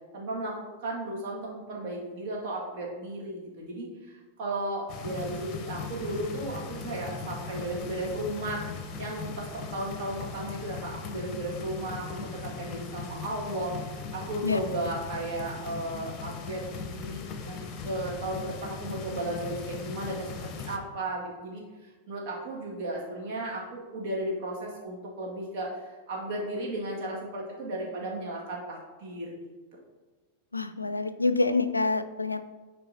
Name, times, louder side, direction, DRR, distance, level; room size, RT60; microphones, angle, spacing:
voice 1, 0.1-4.1 4.4-13.7 14.1-17.6 17.8-29.3, right 1 dB, 45° right, -3 dB, 2.1 m, -35 dB
sound 1, 4.9-20.8, left 5 dB, 30° left, 0.9 m, -39 dB
voice 2, 30.5-32.4, left 3 dB, 85° left, 11 dB, 0.3 m, -27 dB
11.5 x 4.5 x 2.8 m, 1.3 s
figure-of-eight pair, 90°, 0 cm